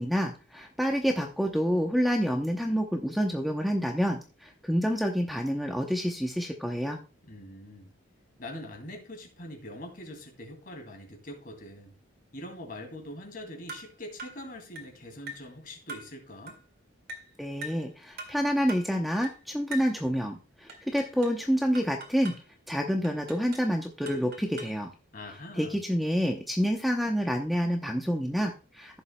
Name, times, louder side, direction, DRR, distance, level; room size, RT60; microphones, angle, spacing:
voice 1, 0.0-7.0 17.4-22.3 22.7-24.9 25.6-29.0, equal, ahead, 2 dB, 0.7 m, -28 dB
voice 2, 7.2-7.9 8.4-11.9 12.3-16.6 25.1-25.8, left 1 dB, 45° left, 3 dB, 2.4 m, -43 dB
sound 1, 13.7-13.9 14.2-14.4 14.8-14.9 15.3-15.5 15.9-16.1 16.5-16.6 17.1-17.3 17.6-17.9 18.2-18.4 18.7-18.9 19.2-19.4 19.7-20.0 20.7-21.4 21.7-22.4 23.0-23.7 24.1-24.8, right 1 dB, 50° right, 2.1 m, -42 dB
14.5 x 7.2 x 2.2 m, 0.33 s
head